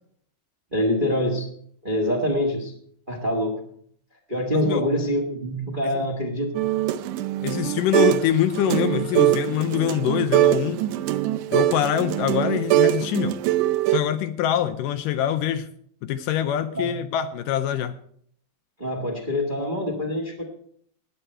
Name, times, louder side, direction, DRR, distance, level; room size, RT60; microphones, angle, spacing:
voice 1, 0.7-1.5 1.8-2.7 3.1-3.6 4.3-6.5 16.7-17.0 18.8-20.4, equal, 25° right, 1 dB, 1.1 m, -25 dB
voice 2, 4.5-4.9 7.4-10.8 11.5-13.4 13.9-15.7 16.0-17.9, left 10 dB, 80° left, 10 dB, 2.1 m, -24 dB
sound 1, 6.5-8.3 8.5-14.0, right 14 dB, 75° right, 2.0 m, -22 dB
19.5 x 8.2 x 4.5 m, 0.62 s
omnidirectional pair, 4.1 m